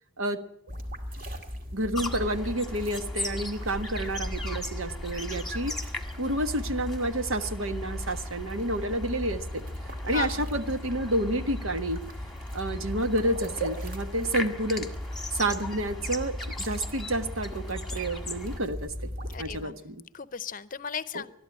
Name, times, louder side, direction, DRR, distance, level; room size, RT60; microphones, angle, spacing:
sound 1, 0.7-19.7, equal, 40° right, 2.2 m, -37 dB
voice 1, 1.7-5.8 6.2-9.6 10.0-12.0 12.5-14.9 15.3-18.9 19.4-20.0 21.1-21.2, right 1 dB, 75° right, 9 dB, 1.4 m, -29 dB
sound 2, 1.9-18.6, left 2 dB, ahead, 1.7 m, -40 dB
voice 2, 19.3-19.8 20.1-21.3, left 7 dB, 40° left, 16 dB, 0.7 m, -35 dB
21.0 x 12.5 x 9.9 m, 0.77 s
head